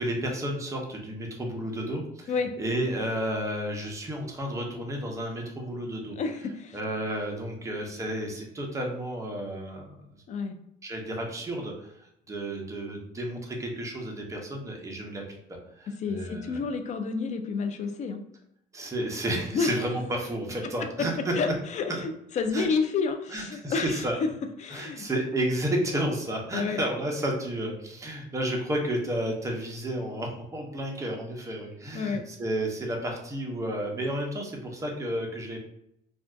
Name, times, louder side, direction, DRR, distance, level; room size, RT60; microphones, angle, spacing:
voice 1, 0.0-6.2 6.7-10.0 10.8-11.9 12.3-16.6 18.7-21.3 21.9-22.0 22.5-22.7 23.3-24.2 24.7-35.6, right 1 dB, 20° right, 0 dB, 0.7 m, -32 dB
voice 2, 6.2-6.8 10.3-10.6 15.9-18.2 19.5-19.7 20.6-20.7 21.0-21.1 21.3-24.3 24.6-25.1 26.5-26.8 31.9-32.2, left 5 dB, 45° left, 7 dB, 0.4 m, -30 dB
2.6 x 2.3 x 3.3 m, 0.78 s
cardioid pair, 110°, 17 cm